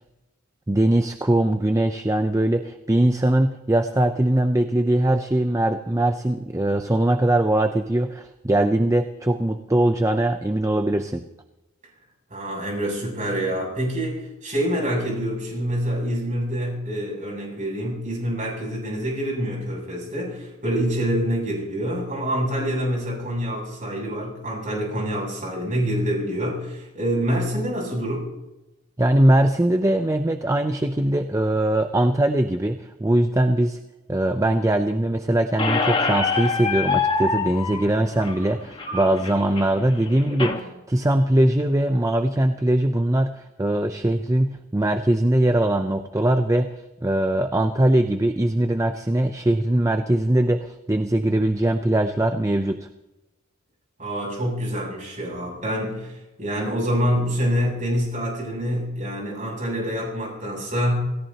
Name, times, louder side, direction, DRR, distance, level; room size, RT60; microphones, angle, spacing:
voice 1, 0.7-11.2 29.0-33.8 34.1-46.7 47.0-52.9, right 1 dB, 15° right, 7 dB, 0.5 m, -21 dB
voice 2, 12.3-28.3 54.0-61.0, equal, 35° right, -2 dB, 7.6 m, -26 dB
Squeak, 35.6-40.6, left 4 dB, 25° left, 1.4 m, -26 dB
27.5 x 17.0 x 2.9 m, 1.0 s
head